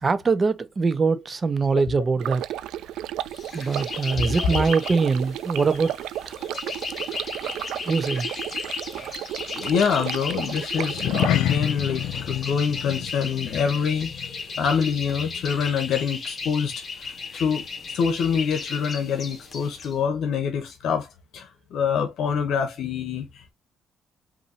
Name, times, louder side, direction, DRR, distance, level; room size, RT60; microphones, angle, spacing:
voice 1, 0.0-2.4 3.5-6.0 6.3-6.4 7.9-8.3, right 4 dB, 35° right, 0.7 m, -23 dB
Stream, 2.2-11.3, right 12 dB, 85° right, 0.3 m, -33 dB
sound 1, 3.3-19.9, left 4 dB, 40° left, 1.7 m, -35 dB
voice 2, 9.5-17.7 17.9-23.5, left 6 dB, 75° left, 0.9 m, -26 dB
sound 2, 10.9-15.5 15.8-16.1 16.6-16.7, left 12 dB, 90° left, 0.4 m, -29 dB
5.5 x 2.7 x 2.8 m
cardioid pair, 90°, 0 cm